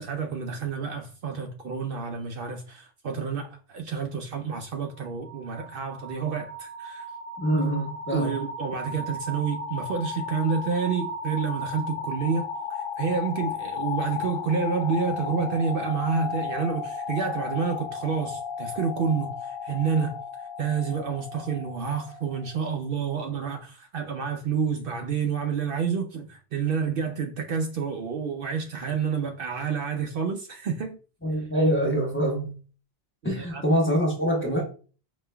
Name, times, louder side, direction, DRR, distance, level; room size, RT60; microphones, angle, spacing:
voice 1, 0.0-7.1 8.1-31.0 33.4-33.6, right 6 dB, 65° right, 0.7 m, -29 dB
sound 1, 5.0-22.7, left 4 dB, 65° left, 0.8 m, -35 dB
voice 2, 7.4-8.3 31.2-32.5 33.2-34.6, equal, 10° left, 1.1 m, -24 dB
5.1 x 3.0 x 2.2 m
omnidirectional pair, 1.1 m